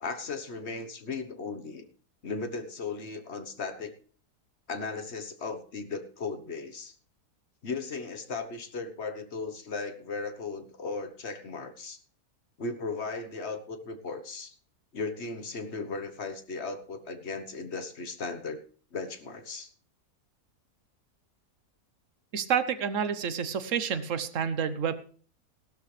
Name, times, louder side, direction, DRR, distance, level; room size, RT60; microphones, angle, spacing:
voice 1, 0.0-1.9 2.2-3.9 4.7-6.9 7.6-12.0 12.6-14.5 14.9-18.6 18.9-19.7, left 4 dB, 45° left, 9 dB, 1.3 m, -36 dB
voice 2, 22.3-24.9, right 7 dB, 55° right, 12 dB, 1.2 m, -29 dB
16.0 x 12.5 x 3.3 m, 0.43 s
omnidirectional pair, 1.7 m